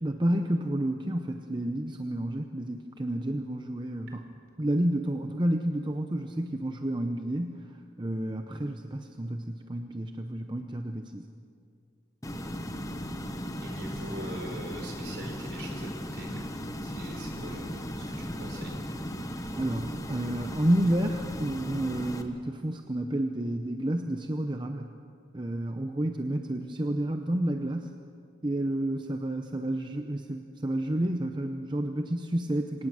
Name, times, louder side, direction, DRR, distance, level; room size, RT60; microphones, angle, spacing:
voice 1, 0.0-4.2 4.6-11.3 19.5-24.9 25.3-27.9 28.4-32.9, right 1 dB, 25° right, 5 dB, 0.7 m, -30 dB
sound 1, 12.2-22.2, equal, 15° left, 1.1 m, -36 dB
voice 2, 13.6-16.4 16.8-18.7, right 1 dB, 60° right, 1 dB, 4.9 m, -42 dB
25.5 x 18.5 x 6.4 m, 2.2 s
head